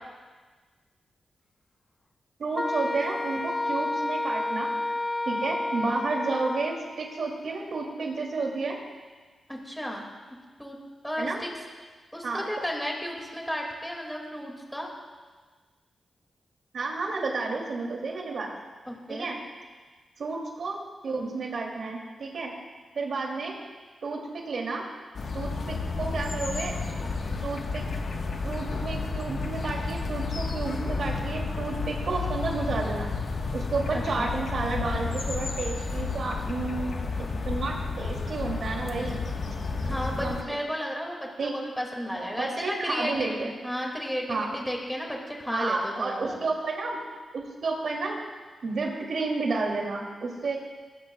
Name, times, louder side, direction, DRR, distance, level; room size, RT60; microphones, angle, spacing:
voice 1, 2.4-4.7 5.2-8.8 11.2-11.4 12.2-12.5 16.7-18.5 19.1-19.4 20.2-20.8 21.0-22.5 22.9-23.6 24.0-24.8 25.3-26.8 27.4-27.8 28.4-33.1 33.5-39.2 40.2-40.4 41.4-41.5 42.1-43.5 44.3-44.5 45.5-47.0 47.3-48.2 48.6-50.6, right 3 dB, 70° right, 0 dB, 3.0 m, -31 dB
Wind instrument woodwind instrument, 2.5-6.9, left 2 dB, 20° left, 0.8 m, -30 dB
voice 2, 9.5-10.1 10.6-10.8 11.0-11.5 12.1-14.9 18.9-19.3 33.9-34.3 39.8-46.4, equal, 5° left, -1 dB, 2.4 m, -33 dB
sound 1, 25.1-40.4, left 4 dB, 65° left, 1.5 m, -31 dB
20.0 x 15.5 x 2.4 m, 1.4 s
cardioid pair, 85°, 0 cm